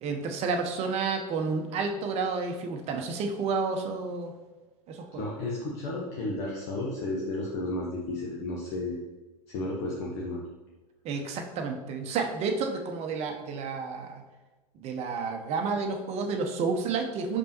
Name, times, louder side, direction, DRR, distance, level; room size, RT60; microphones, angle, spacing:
voice 1, 0.0-4.3 4.9-5.3 11.0-14.2 14.7-17.4, right 4 dB, 30° right, 4 dB, 0.8 m, -30 dB
voice 2, 5.1-9.0 9.5-10.4, left 2 dB, 45° left, -3 dB, 1.1 m, -33 dB
6.3 x 5.3 x 2.9 m, 1.2 s
figure-of-eight pair, 90°, 20 cm